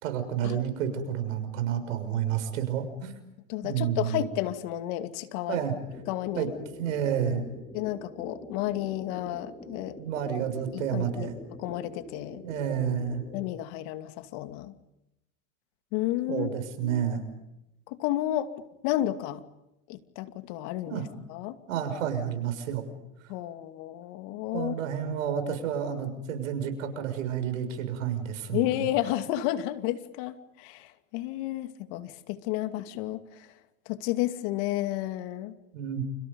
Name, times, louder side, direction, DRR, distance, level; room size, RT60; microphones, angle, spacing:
voice 1, 0.0-3.1 3.6-4.3 5.5-5.7 6.4-6.5 6.8-7.5 10.0-11.4 12.4-13.2 16.3-17.2 20.9-21.0 21.7-22.8 24.5-28.8 35.7-36.0, right 8 dB, 85° right, 8 dB, 6.4 m, -30 dB
voice 2, 3.5-5.6 6.1-6.5 7.7-10.0 10.7-11.3 11.6-12.4 13.3-14.7 15.9-16.5 16.8-17.1 17.9-18.5 18.8-19.4 19.9-21.6 23.3-24.7 28.5-33.5 33.9-35.6, left 14 dB, 70° left, 9 dB, 2.6 m, -31 dB
sound 1, 5.9-13.4, left 1 dB, 10° left, 6.2 m, -45 dB
30.0 x 29.5 x 5.4 m, 0.90 s
supercardioid pair, 100°, 38 cm